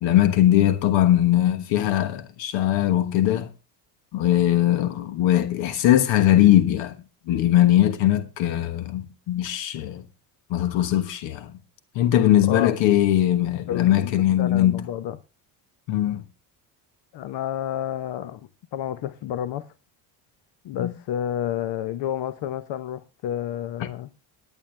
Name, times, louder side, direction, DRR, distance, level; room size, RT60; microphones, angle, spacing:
voice 1, 0.0-3.5 4.1-6.9 7.3-10.0 10.5-11.5 11.9-14.8 15.9-16.2 20.8-20.9 23.8-23.9, left 12 dB, 85° left, 1.3 m, -20 dB
voice 2, 13.7-14.1 14.4-15.2 17.1-19.7 20.6-24.1, left 10 dB, 65° left, 0.9 m, -30 dB
23.5 x 8.9 x 3.3 m
cardioid pair, 115°, 44 cm